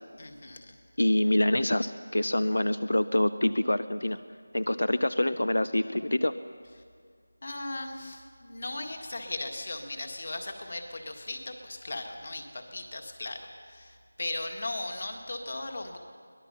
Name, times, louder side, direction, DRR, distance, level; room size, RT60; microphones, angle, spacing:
voice 1, 0.2-0.7 7.4-13.4 13.7-16.0, left 2 dB, 35° left, 5 dB, 1.9 m, -37 dB
voice 2, 1.0-4.2 4.5-6.3, left 1 dB, 90° left, 13 dB, 0.7 m, -26 dB
24.0 x 19.0 x 5.7 m, 2.1 s
figure-of-eight pair, 180°, 0 cm